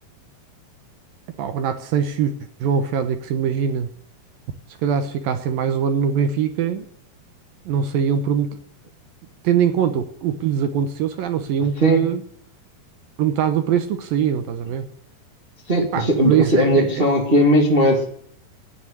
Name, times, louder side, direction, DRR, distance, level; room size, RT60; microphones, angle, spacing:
voice 1, 1.4-2.3 2.6-3.9 4.8-6.9 7.7-8.5 9.4-12.2 13.2-14.9 15.9-17.1, right 8 dB, 70° right, 9 dB, 2.5 m, -22 dB
voice 2, 11.8-12.1 15.7-18.0, equal, 25° right, 1 dB, 1.3 m, -18 dB
12.0 x 10.0 x 10.0 m, 0.62 s
omnidirectional pair, 4.8 m